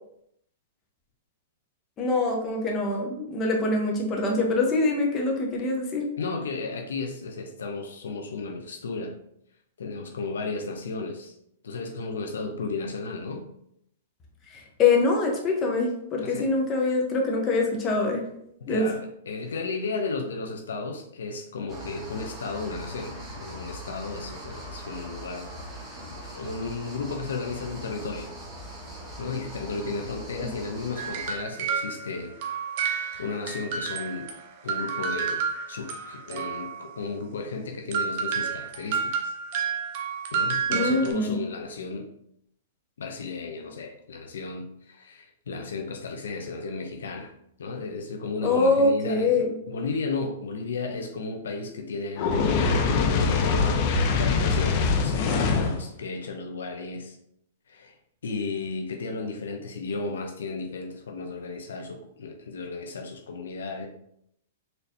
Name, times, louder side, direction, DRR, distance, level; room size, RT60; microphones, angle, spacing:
voice 1, 2.0-6.0 14.5-18.2 18.7-18.9 30.4-30.5 40.7-41.4 48.4-49.4, left 3 dB, 25° left, 0 dB, 1.0 m, -24 dB
voice 2, 6.2-9.2 9.8-11.3 11.6-13.5 16.2-16.5 18.7-25.5 26.0-28.3 29.2-32.3 32.8-34.3 34.6-39.3 40.3-42.1 43.0-47.3 47.6-53.9 54.1-57.2 57.7-58.0 58.2-63.9, left 3 dB, 85° left, 3 dB, 0.6 m, -34 dB
sound 1, 21.7-31.3, equal, 10° right, 1.1 m, -41 dB
sound 2, 31.0-34.4 34.7-36.9 37.9-41.1, right 6 dB, 50° right, 0.7 m, -30 dB
Fire, 52.2-55.8, left 4 dB, 45° left, 0.6 m, -23 dB
4.1 x 3.2 x 2.7 m, 0.74 s
hypercardioid pair, 135°, 0 cm